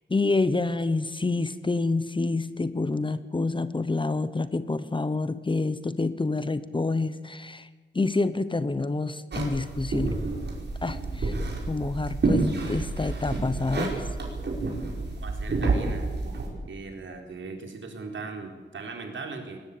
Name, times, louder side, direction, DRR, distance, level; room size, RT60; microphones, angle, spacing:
voice 1, 0.1-7.7 7.9-10.2 10.8-11.4 11.7-14.0, left 3 dB, 25° left, 14 dB, 0.9 m, -28 dB
sound 1, 9.3-16.5, right 3 dB, 60° right, 5.0 m, -29 dB
voice 2, 15.2-16.1 16.6-19.6, right 4 dB, 80° right, 3 dB, 4.1 m, -38 dB
21.0 x 20.0 x 8.5 m, 1.3 s
wide cardioid pair, 165°, 19 cm